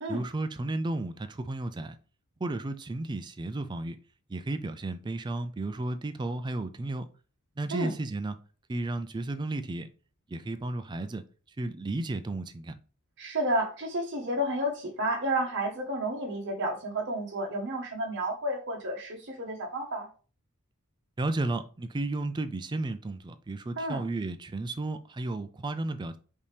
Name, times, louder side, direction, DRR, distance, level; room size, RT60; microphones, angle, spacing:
voice 1, 0.1-2.0 2.4-4.0 4.3-7.1 7.6-8.4 8.7-9.9 10.3-11.2 11.6-12.8 21.2-26.2, right 2 dB, 20° right, 0.3 m, -33 dB
voice 2, 13.2-20.1 23.8-24.0, right 1 dB, 55° right, 1.2 m, -31 dB
5.2 x 2.8 x 3.3 m
head